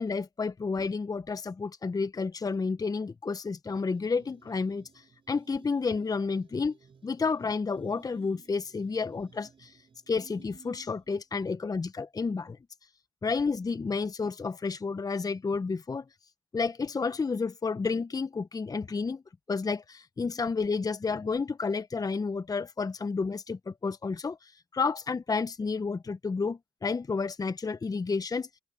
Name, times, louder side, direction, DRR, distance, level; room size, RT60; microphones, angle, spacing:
voice 1, 0.0-6.8 7.0-9.8 10.1-12.6 13.2-16.0 16.5-19.2 19.5-28.5, left 4 dB, 30° left, 1.2 m, -31 dB
sound 1, 3.6-11.2, right 6 dB, 40° right, 4.5 m, -57 dB
open air
hypercardioid pair, 55°, 13 cm